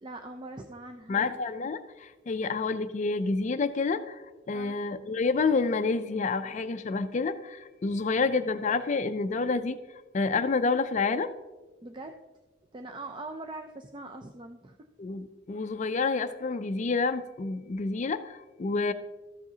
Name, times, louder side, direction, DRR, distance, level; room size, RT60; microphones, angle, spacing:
voice 1, 0.0-1.2 4.5-4.8 11.8-12.2 12.7-14.8, right 2 dB, 25° right, 5 dB, 0.4 m, -42 dB
voice 2, 1.1-9.8 10.1-11.3 15.0-18.9, left 4 dB, 40° left, 10 dB, 0.4 m, -28 dB
13.5 x 7.3 x 2.8 m, 1.2 s
head